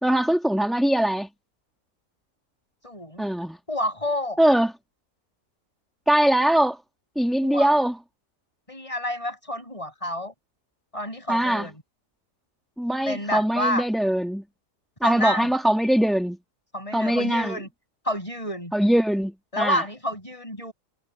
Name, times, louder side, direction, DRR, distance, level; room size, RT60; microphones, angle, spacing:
voice 1, 0.0-1.3 3.2-3.6 4.4-4.7 6.1-6.8 7.2-8.0 11.3-11.7 12.8-14.4 15.0-16.4 16.9-17.6 18.7-19.8, right 1 dB, ahead, 1.7 m, -22 dB
voice 2, 2.8-3.2 3.7-4.4 7.4-7.7 8.7-10.3 10.9-11.7 13.1-13.9 15.0-15.5 16.7-17.7 18.0-18.7 19.5-20.7, left 1 dB, 20° left, 7.7 m, -29 dB
omnidirectional pair, 1.8 m